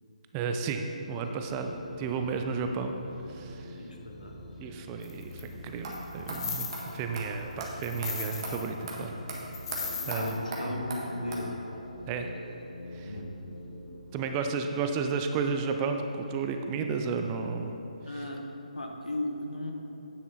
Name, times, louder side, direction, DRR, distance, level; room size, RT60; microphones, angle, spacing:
voice 1, 0.3-2.9 3.3-3.8 4.6-9.1 10.0-10.3 10.6-10.7 12.1-12.3 12.9-13.1 14.1-17.8, right 5 dB, 20° right, 5 dB, 0.5 m, -32 dB
sound 1, 1.1-14.9, left 1 dB, 15° left, 2.1 m, -46 dB
voice 2, 3.8-4.4 10.1-11.6 13.0-13.3 18.1-18.5 18.7-19.7, left 1 dB, 90° left, 2 dB, 1.2 m, -36 dB
Earring Anklet Payal Jhumka Jewellery, 5.0-5.4 5.9-7.1 7.5-8.7 9.0-9.1 9.3-10.4, left 6 dB, 35° left, 1.2 m, -37 dB
sound 2, 5.8-5.9 6.3-6.4 6.7-6.8 7.1-7.3 7.6-7.7 8.0-8.1 8.4-8.5 8.9-9.0 9.3-9.4 9.7-9.8 10.1-10.2 10.5-10.6 10.9-11.0 11.3-11.4, right 3 dB, 40° right, 1.7 m, -37 dB
9.6 x 7.3 x 4.1 m, 2.9 s
figure-of-eight pair, 145°, 4 cm